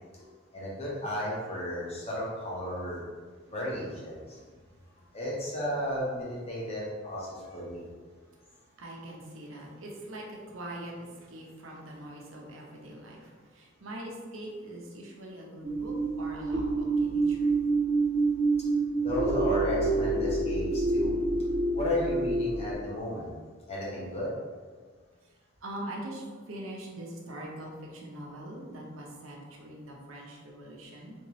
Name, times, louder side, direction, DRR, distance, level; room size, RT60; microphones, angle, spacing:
voice 1, 0.5-3.0 3.5-4.4 5.1-7.9 19.0-21.1 21.7-23.3 23.7-24.3, left 1 dB, 30° left, -6 dB, 1.0 m, -34 dB
voice 2, 8.8-17.5 25.6-31.1, right 1 dB, 75° right, -1 dB, 0.7 m, -42 dB
sound 1, 15.6-22.7, right 3 dB, 20° right, 0.3 m, -27 dB
3.4 x 2.7 x 3.1 m, 1.5 s
head